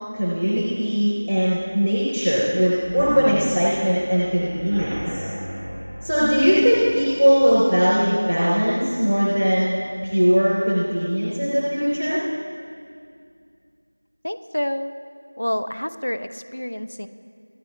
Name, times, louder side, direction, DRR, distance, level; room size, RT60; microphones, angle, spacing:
voice 1, 0.1-5.2 6.0-12.2, equal, 80° right, -6 dB, 3.6 m, -20 dB
sound 1, 2.8-10.4 10.8-11.2 11.4-11.5 11.9-12.0, equal, 20° right, 1.9 m, -36 dB
voice 2, 14.2-14.9 15.4-17.1, left 1 dB, 20° left, 11 dB, 0.3 m, -28 dB
26.0 x 9.8 x 3.2 m, 2.3 s
figure-of-eight pair, 180°, 0 cm